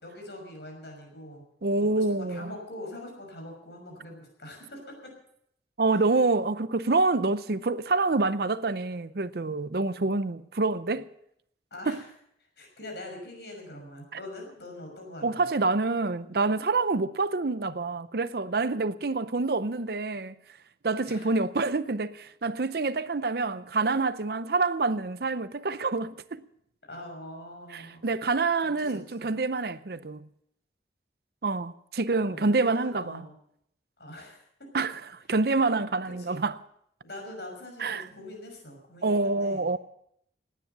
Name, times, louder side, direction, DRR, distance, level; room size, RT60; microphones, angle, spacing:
voice 1, 0.0-1.4 1.9-5.1 5.9-6.0 11.7-12.1 12.6-15.7 21.1-21.3 26.9-28.0 28.6-29.3 32.2-33.4 34.0-34.4 35.7-35.8 36.0-36.4 37.0-39.7, left 1 dB, 70° left, 6.1 m, -43 dB
voice 2, 1.6-2.5 5.8-11.1 11.9-12.0 15.2-20.3 20.8-26.4 27.7-30.3 31.4-33.3 34.7-35.0 35.3-36.6 37.8-38.1 39.0-39.8, right 3 dB, 60° right, 0.7 m, -27 dB
18.5 x 9.9 x 6.8 m
head